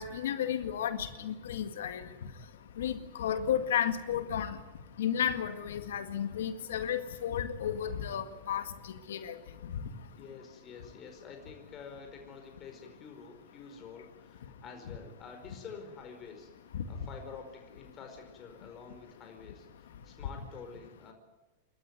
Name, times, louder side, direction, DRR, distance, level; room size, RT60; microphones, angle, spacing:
voice 1, 0.0-2.0 2.8-4.6 5.0-8.6 9.1-9.4 16.7-16.8, left 9 dB, 80° left, 9 dB, 1.9 m, -32 dB
voice 2, 10.1-16.5 16.9-21.1, left 5 dB, 30° left, 3 dB, 4.8 m, -48 dB
29.0 x 13.5 x 9.5 m, 1.1 s
hypercardioid pair, 125°, 0 cm